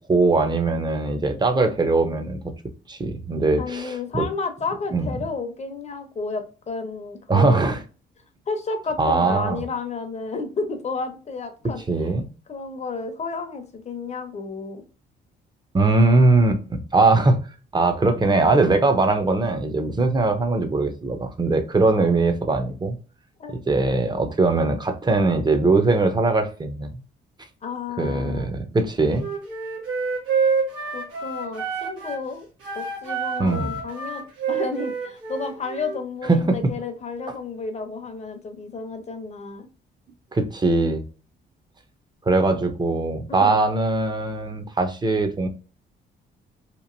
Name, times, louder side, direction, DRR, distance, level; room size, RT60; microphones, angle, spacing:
voice 1, 0.1-2.4 2.9-4.2 4.9-5.1 7.3-7.8 9.0-9.6 11.9-12.3 15.7-17.4 17.7-23.0 23.5-26.9 28.0-29.2 33.4-33.7 36.3-36.6 40.3-41.0 42.3-45.5, right 3 dB, 20° right, 0.6 m, -21 dB
voice 2, 3.6-7.7 8.5-11.8 12.5-14.8 23.4-23.6 27.6-28.5 30.4-30.5 30.9-32.5 32.7-39.7 43.3-43.6, left 4 dB, 35° left, 0.7 m, -32 dB
Wind instrument woodwind instrument, 29.1-32.2 32.6-36.0, right 5 dB, 85° right, 1.2 m, -28 dB
2.9 x 2.5 x 2.5 m
cardioid pair, 90°, 20 cm